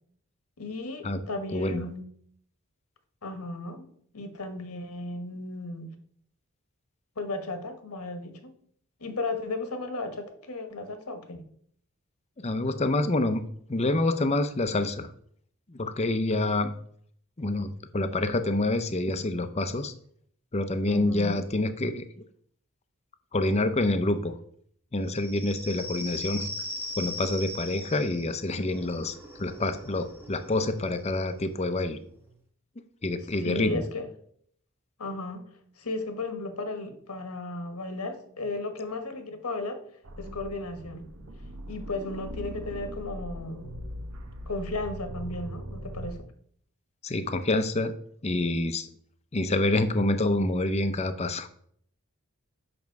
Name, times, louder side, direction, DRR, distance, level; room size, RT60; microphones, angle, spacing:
voice 1, 0.6-2.1 3.2-3.9 4.1-5.9 7.2-8.5 9.0-11.5 20.9-21.4 33.4-34.1 35.0-35.4 35.8-39.8 40.2-41.0 41.7-43.7 44.5-46.2, left 2 dB, 85° left, 8 dB, 1.3 m, -35 dB
voice 2, 1.5-1.8 12.4-13.4 13.7-15.1 15.7-16.7 17.4-19.9 20.5-22.0 23.3-24.3 24.9-26.5 27.0-32.0 33.0-33.9 47.0-47.9 48.2-48.9 49.3-51.5, left 2 dB, 30° left, 10 dB, 0.6 m, -27 dB
sound 1, 25.1-32.3, left 1 dB, 10° right, 1.0 m, -40 dB
sound 2, 40.0-46.2, equal, 75° right, 1.0 m, -40 dB
7.4 x 5.9 x 4.6 m, 0.63 s
head